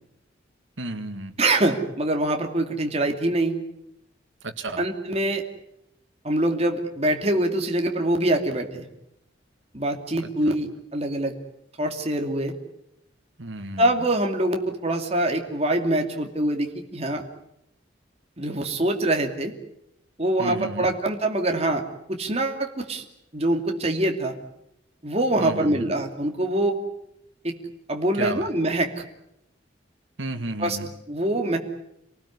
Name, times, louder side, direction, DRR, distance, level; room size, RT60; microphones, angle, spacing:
voice 1, 0.8-1.4 4.4-4.8 10.2-10.5 13.4-13.9 20.4-21.0 25.4-25.9 28.1-28.5 30.2-30.9, right 2 dB, 90° right, 6 dB, 1.9 m, -33 dB
voice 2, 1.4-3.6 4.8-5.4 6.2-8.9 9.7-11.3 11.8-12.5 13.8-17.2 18.4-19.5 20.2-21.8 22.1-23.0 23.3-24.3 25.0-26.8 27.4-27.6 27.9-28.9 30.6-30.8 31.1-31.6, right 1 dB, 35° right, 3 dB, 2.6 m, -24 dB
27.5 x 19.0 x 9.8 m, 0.81 s
head